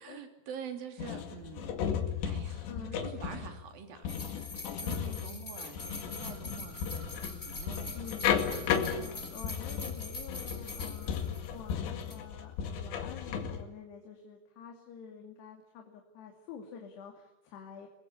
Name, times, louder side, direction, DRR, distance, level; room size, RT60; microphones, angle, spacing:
voice 1, 0.0-8.1 8.4-8.8, right 7 dB, 60° right, 6 dB, 4.7 m, -47 dB
sound 1, 1.0-13.6, left 8 dB, 90° left, 4.5 m, -35 dB
voice 2, 2.7-3.0 4.8-5.5 7.9-8.4 8.7-11.1 11.5-17.9, left 7 dB, 75° left, 2 dB, 4.7 m, -48 dB
sound 2, 4.1-11.7 12.0-12.1, left 2 dB, 15° left, 4.0 m, -44 dB
sound 3, 5.8-11.8, left 1 dB, 35° left, 5.3 m, -53 dB
28.5 x 22.0 x 8.4 m, 0.88 s
omnidirectional pair, 4.9 m